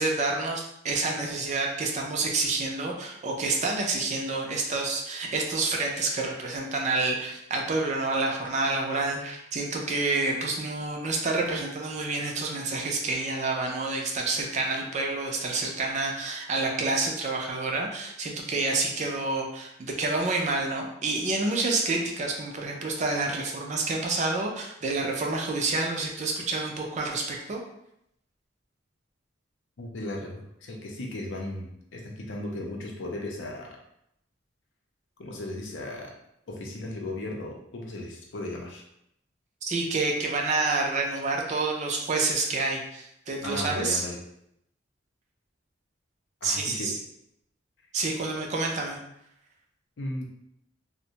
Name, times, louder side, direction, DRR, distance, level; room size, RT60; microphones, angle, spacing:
voice 1, 0.0-27.6 39.6-44.0 46.4-47.0 47.9-49.0, right 3 dB, 40° right, 1 dB, 0.4 m, -28 dB
voice 2, 29.8-33.8 35.2-36.1 36.5-38.8 43.4-44.2 46.4-46.9 50.0-50.3, left 1 dB, 75° left, -1 dB, 0.6 m, -36 dB
2.4 x 2.1 x 2.8 m, 0.77 s
head